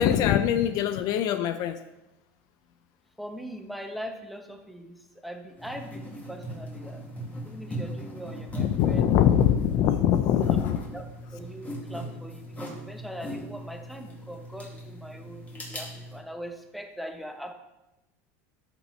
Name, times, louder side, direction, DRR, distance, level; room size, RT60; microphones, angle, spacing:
voice 1, 0.0-1.8 8.6-10.8, left 10 dB, 55° left, 11 dB, 0.6 m, -23 dB
voice 2, 3.2-7.0 7.4-9.2 10.3-10.4 10.6-11.0 11.3-17.5, equal, ahead, 4 dB, 1.0 m, -41 dB
sound 1, 5.6-16.2, right 1 dB, 20° left, 2.5 m, -39 dB
13.0 x 6.0 x 3.2 m, 0.98 s
supercardioid pair, 125°, 8 cm